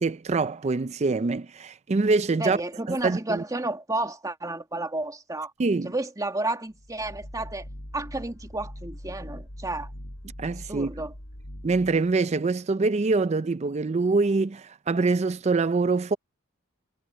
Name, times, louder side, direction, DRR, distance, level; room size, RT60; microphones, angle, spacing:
voice 1, 0.0-2.6 2.9-3.4 5.6-5.9 10.4-10.9 11.6-16.2, right 3 dB, 30° right, 0.4 m, -24 dB
voice 2, 2.4-5.5 5.8-7.7 7.9-9.9 10.7-11.1, right 2 dB, 15° right, 2.1 m, -31 dB
sound 1, 6.7-12.2, equal, 70° left, 5.2 m, -42 dB
head